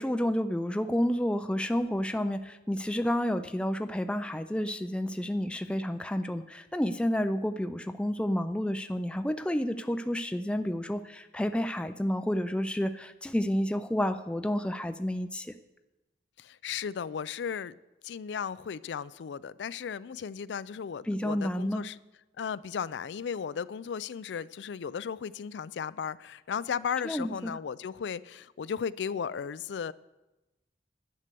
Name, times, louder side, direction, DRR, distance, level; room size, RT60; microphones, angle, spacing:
voice 1, 0.0-15.5 21.1-21.8 27.0-27.5, equal, 5° left, 9 dB, 0.3 m, -30 dB
voice 2, 16.4-17.7 18.0-22.0 22.4-29.9, left 7 dB, 80° left, 18 dB, 0.4 m, -35 dB
10.5 x 8.1 x 6.8 m, 1.0 s
head